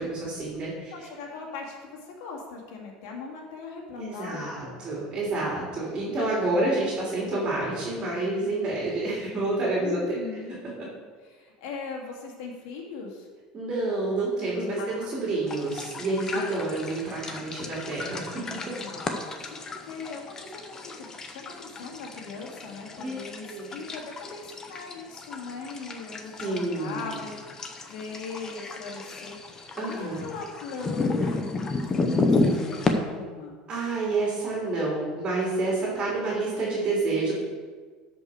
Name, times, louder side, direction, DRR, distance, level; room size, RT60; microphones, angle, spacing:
voice 1, 0.0-0.9 3.9-10.2 13.5-18.5 23.0-23.2 23.5-23.7 26.4-27.0 29.8-30.2 32.4-32.7 33.7-37.3, right 2 dB, 30° right, -5 dB, 2.9 m, -28 dB
voice 2, 0.7-4.8 6.5-7.0 9.8-10.6 11.2-13.3 14.8-15.1 16.3-16.5 18.7-33.6, left 4 dB, 85° left, 0 dB, 2.3 m, -40 dB
sound 1, 15.5-32.9, left 3 dB, 20° left, 0.9 m, -32 dB
12.5 x 5.3 x 4.9 m, 1.5 s
cardioid pair, 150°, 3 cm